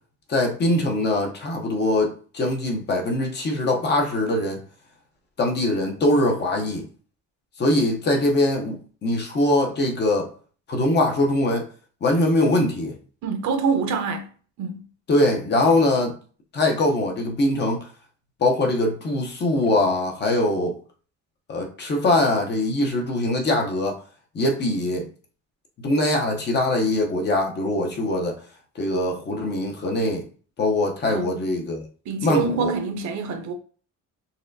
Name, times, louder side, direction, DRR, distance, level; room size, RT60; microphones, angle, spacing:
voice 1, 0.3-4.6 5.4-6.9 7.6-10.3 10.7-11.7 12.0-13.0 15.1-16.2 16.5-17.8 18.4-20.8 21.5-24.0 24.3-25.1 25.8-28.4 28.8-30.2 30.6-31.9 32.2-32.7, left 1 dB, 35° left, 0.7 m, -22 dB
voice 2, 13.2-14.2 14.6-14.8 31.1-31.3 32.1-33.5, right 5 dB, 60° right, 0.7 m, -25 dB
4.1 x 3.2 x 2.6 m
cardioid pair, 175°, 32 cm